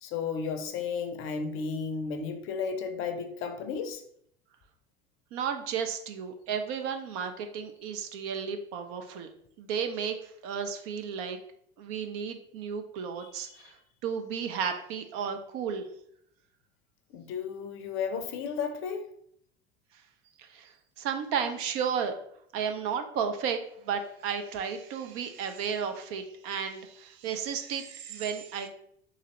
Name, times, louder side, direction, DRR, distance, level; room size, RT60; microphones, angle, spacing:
voice 1, 0.0-4.0 13.2-13.7 17.1-19.0, left 5 dB, 40° left, 7 dB, 0.6 m, -34 dB
voice 2, 5.3-9.3 9.6-11.4 11.8-15.9 20.4-22.1 22.5-28.7, right 7 dB, 45° right, 7 dB, 0.5 m, -33 dB
3.9 x 2.6 x 3.0 m, 0.69 s
figure-of-eight pair, 75°, 32 cm